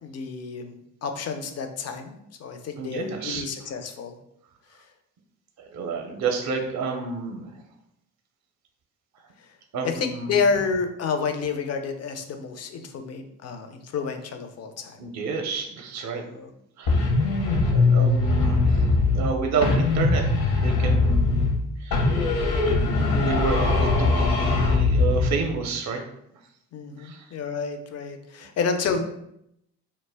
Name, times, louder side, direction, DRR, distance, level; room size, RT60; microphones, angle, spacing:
voice 1, 0.0-2.1 2.4-4.2 9.8-15.0 16.1-16.5 26.7-29.0, left 5 dB, 40° left, 6 dB, 0.4 m, -29 dB
voice 2, 2.8-3.4 5.6-7.5 9.7-10.4 15.0-16.2 16.8-17.0 17.7-21.4 21.8-22.1 23.2-26.0 27.0-27.3, right 5 dB, 45° right, 4 dB, 0.5 m, -30 dB
sound 1, 16.9-19.3 19.6-21.6 21.9-25.3, left 3 dB, 65° left, 0.8 m, -21 dB
2.1 x 2.0 x 3.3 m, 0.78 s
hypercardioid pair, 45°, 40 cm